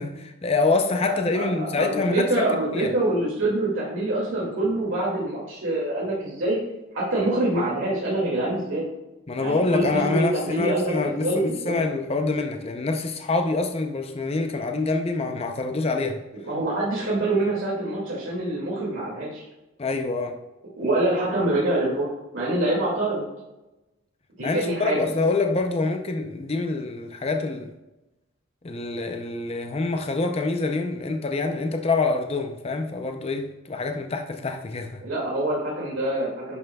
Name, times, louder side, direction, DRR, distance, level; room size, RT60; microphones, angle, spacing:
voice 1, 0.0-2.9 9.3-16.2 19.8-20.4 24.4-27.7 28.6-35.0, left 3 dB, 30° left, 0.5 m, -26 dB
voice 2, 1.1-6.6 6.9-8.9 9.4-11.8 16.4-19.4 20.8-22.1 22.3-23.2 24.4-25.0 35.0-36.6, right 1 dB, 70° right, 2.2 m, -25 dB
11.0 x 5.5 x 2.3 m
head